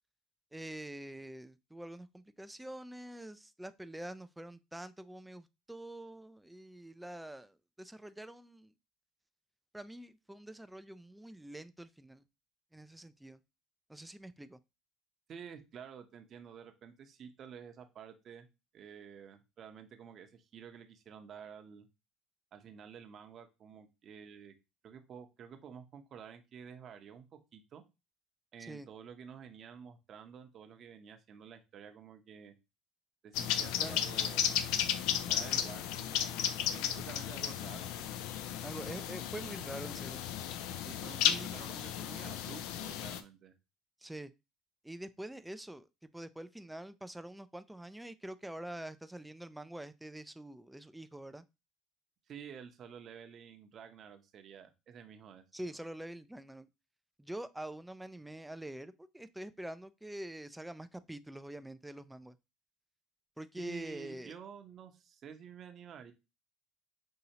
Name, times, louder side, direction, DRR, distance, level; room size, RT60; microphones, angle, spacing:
voice 1, 0.5-8.7 9.7-12.2 12.7-13.4 13.9-14.6 28.6-28.9 33.8-34.0 38.6-40.2 41.2-41.5 44.0-44.3 44.8-45.9 46.1-51.4 55.5-56.7 57.2-62.4 63.4-64.3, right 1 dB, 5° right, 0.4 m, -45 dB
voice 2, 15.3-18.5 18.7-21.9 22.5-24.5 24.8-27.8 28.5-32.5 33.2-34.4 35.0-36.4 36.7-37.9 38.8-39.1 40.9-43.5 52.3-55.4 63.6-66.1, right 7 dB, 45° right, 0.8 m, -51 dB
sound 1, 33.3-43.2, left 10 dB, 75° left, 0.4 m, -34 dB
5.4 x 2.8 x 2.9 m
supercardioid pair, 90°, 0 cm